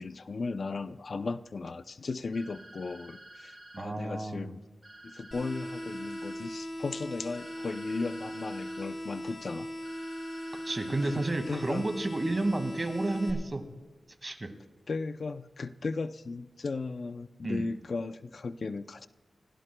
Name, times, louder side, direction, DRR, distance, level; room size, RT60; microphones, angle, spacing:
voice 1, 0.0-4.6 5.0-9.7 11.0-11.9 12.4-12.6 14.9-19.1, left 4 dB, 60° left, 11 dB, 0.6 m, -36 dB
sound 1, 2.3-3.9 4.8-6.4 7.3-8.9 9.8-11.4, right 1 dB, 20° right, 5.5 m, -51 dB
voice 2, 3.7-4.5 10.6-13.6 14.2-14.5 17.4-17.7, right 2 dB, 35° right, 6 dB, 2.0 m, -31 dB
sound 2, 5.3-13.3, equal, 45° left, 6.3 m, -39 dB
30.0 x 16.5 x 2.3 m, 1.2 s
wide cardioid pair, 75°, 0 cm